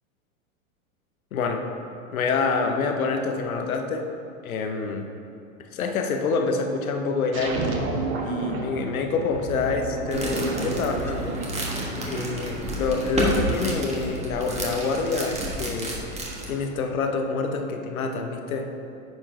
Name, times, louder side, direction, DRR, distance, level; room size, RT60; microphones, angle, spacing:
voice 1, 1.3-1.6 2.1-4.0 4.4-5.1 5.7-7.6 8.2-11.4 12.0-15.9 16.5-18.7, left 4 dB, 80° left, 5 dB, 1.0 m, -26 dB
sound 1, 7.3-12.7, right 3 dB, 80° right, 1.3 m, -31 dB
sound 2, 10.1-16.5, right 1 dB, 15° right, 1.4 m, -30 dB
9.7 x 4.5 x 4.9 m, 2.7 s
hypercardioid pair, 105°, 41 cm